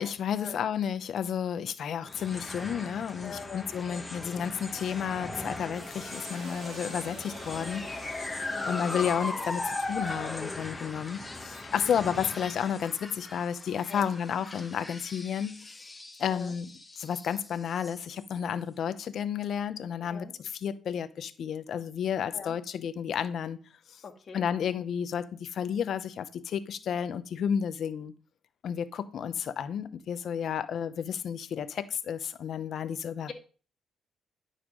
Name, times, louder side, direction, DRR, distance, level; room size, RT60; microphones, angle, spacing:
voice 1, 0.0-15.7 16.2-23.6 23.9-24.0 24.3-28.1 28.6-33.3, left 8 dB, 65° left, 0.8 m, -32 dB
sound 1, 2.1-18.5, left 2 dB, 15° left, 1.4 m, -39 dB
voice 2, 3.2-4.1 8.5-8.9 13.9-14.1 16.3-16.5 20.0-20.3 22.3-22.5 24.0-24.4 33.3-33.4, left 6 dB, 45° left, 1.8 m, -43 dB
sound 2, 5.7-12.0, right 2 dB, 85° right, 4.0 m, -51 dB
11.0 x 6.7 x 3.8 m
cardioid pair, 90°, 0 cm